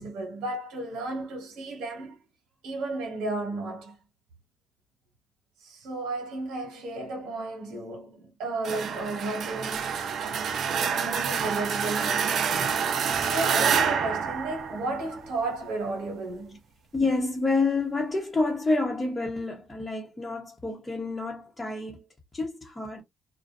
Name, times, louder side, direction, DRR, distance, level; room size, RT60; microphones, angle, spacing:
voice 1, 0.0-2.2 2.6-4.0 5.6-10.4 10.9-12.7 13.1-16.6, right 2 dB, 90° right, 1.0 m, -33 dB
sound 1, 8.6-15.4, right 7 dB, 65° right, 0.5 m, -27 dB
voice 2, 16.9-22.1 22.3-23.0, left 3 dB, 20° left, 0.8 m, -28 dB
2.4 x 2.2 x 2.5 m
cardioid pair, 90°, 0 cm